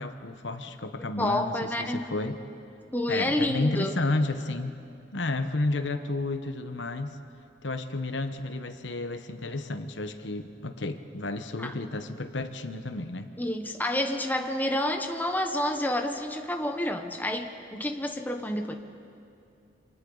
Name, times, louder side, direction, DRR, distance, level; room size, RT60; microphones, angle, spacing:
voice 1, 0.0-2.4 3.1-4.8 5.1-7.2 7.6-13.3, left 2 dB, 80° left, 8 dB, 1.1 m, -31 dB
voice 2, 1.2-2.0 2.9-3.9 11.6-11.7 13.4-18.8, left 1 dB, 10° left, 4 dB, 1.0 m, -29 dB
28.5 x 26.5 x 4.0 m, 2.6 s
head